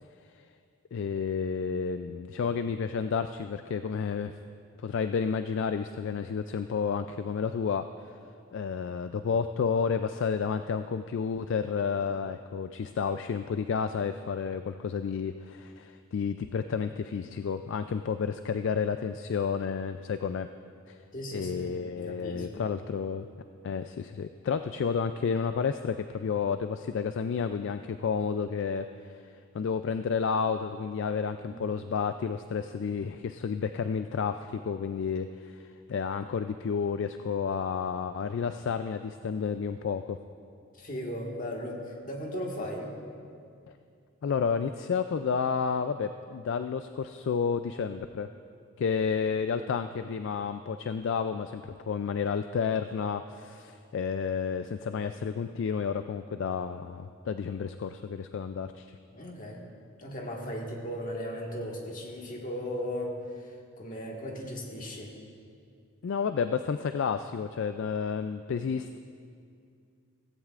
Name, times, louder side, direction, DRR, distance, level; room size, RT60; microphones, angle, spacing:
voice 1, 0.9-4.3 4.8-7.8 8.5-20.5 20.9-21.0 21.3-23.3 23.6-29.2 29.5-40.2 44.2-48.3 48.8-59.0 66.0-69.0, left 6 dB, 55° left, 9 dB, 0.3 m, -31 dB
voice 2, 21.1-22.6 31.5-31.7 40.7-42.9 59.1-59.7 60.0-65.2, equal, 40° left, -1 dB, 1.6 m, -37 dB
16.0 x 15.5 x 2.5 m, 2.3 s
head